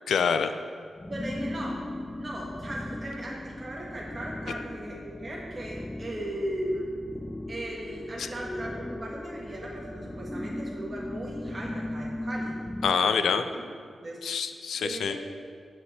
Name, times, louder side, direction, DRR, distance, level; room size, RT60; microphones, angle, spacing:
voice 1, 0.1-0.5 4.5-4.6 8.2-8.3 12.8-13.4 14.2-15.2, left 6 dB, 90° left, 10 dB, 0.5 m, -26 dB
sound 1, 1.0-13.0, left 1 dB, 15° left, 0.3 m, -38 dB
voice 2, 1.1-1.8 2.2-6.9 7.5-12.6 13.0-13.6 14.0-14.2 14.8-15.2, right 1 dB, 30° right, -4 dB, 1.6 m, -37 dB
8.0 x 5.3 x 7.2 m, 2.1 s
cardioid pair, 90°, 0 cm